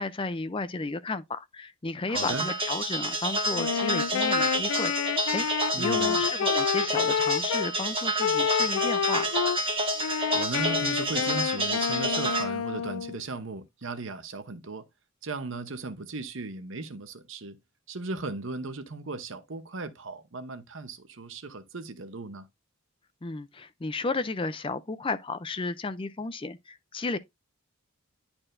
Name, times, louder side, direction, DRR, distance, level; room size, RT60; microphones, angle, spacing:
voice 1, 0.0-5.5 5.8-9.4 23.2-27.2, left 3 dB, 25° left, 0.4 m, -33 dB
sound 1, 2.1-12.4, right 1 dB, 25° right, 1.6 m, -29 dB
voice 2, 2.1-2.5 5.7-6.2 10.3-14.8 15.2-17.6 17.9-22.5, right 3 dB, 60° right, 0.8 m, -36 dB
Wind instrument woodwind instrument, 3.5-7.7 8.2-9.6 10.0-13.2, left 7 dB, 80° left, 0.4 m, -29 dB
10.5 x 4.4 x 2.6 m
head